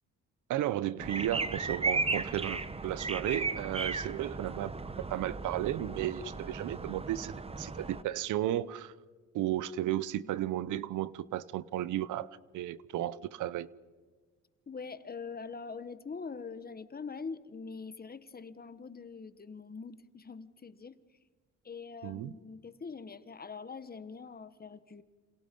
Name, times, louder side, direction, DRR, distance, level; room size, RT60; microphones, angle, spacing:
voice 1, 0.5-4.7 5.1-8.9 9.3-12.3 12.5-13.7 22.0-22.3, right 13 dB, 85° right, 0.9 m, -34 dB
sound 1, 1.0-8.0, right 3 dB, 20° right, 1.2 m, -36 dB
voice 2, 14.7-21.0 21.6-25.0, left 5 dB, 30° left, 1.4 m, -43 dB
29.5 x 27.5 x 5.4 m
cardioid pair, 90°, 30 cm